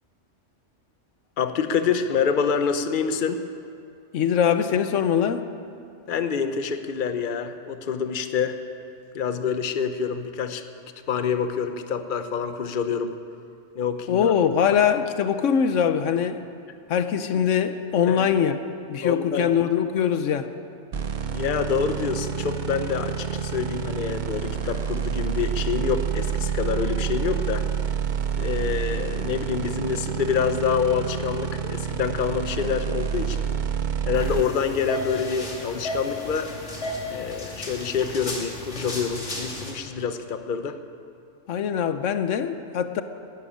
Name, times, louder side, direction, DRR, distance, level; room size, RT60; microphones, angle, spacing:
voice 1, 1.4-3.4 6.1-8.6 9.1-10.6 11.1-13.2 13.8-14.3 18.1-18.2 19.0-19.5 21.3-27.6 28.4-33.5 34.1-36.5 37.1-40.8, left 6 dB, 45° left, 9 dB, 0.9 m, -26 dB
voice 2, 4.1-5.5 14.1-16.4 16.9-18.6 18.9-20.5 41.5-43.0, left 8 dB, 80° left, 10 dB, 1.1 m, -22 dB
sound 1, 20.9-34.4, right 7 dB, 45° right, 0.7 m, -28 dB
sound 2, 34.1-39.7, left 1 dB, 65° left, 2.6 m, -33 dB
13.5 x 11.0 x 9.9 m, 2.5 s
omnidirectional pair, 1.3 m